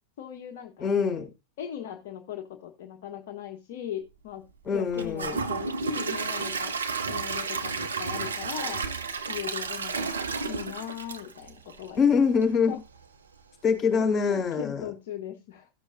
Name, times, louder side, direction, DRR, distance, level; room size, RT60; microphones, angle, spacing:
voice 1, 0.2-0.9 1.6-4.4 4.7-6.7 7.1-8.8 9.3-10.2 10.5-12.2 12.7-12.8 14.0-15.7, left 10 dB, 55° left, 3 dB, 1.0 m, -38 dB
voice 2, 0.8-1.3 4.6-5.3 12.0-12.7 13.6-14.8, left 6 dB, 25° left, 1 dB, 4.5 m, -24 dB
Gurgling / Toilet flush / Trickle dribble, 4.9-12.0 12.4-12.5 13.0-13.1, right 4 dB, 70° right, 0.9 m, -32 dB
15.5 x 6.4 x 2.6 m, 0.26 s
figure-of-eight pair, 90°, 0 cm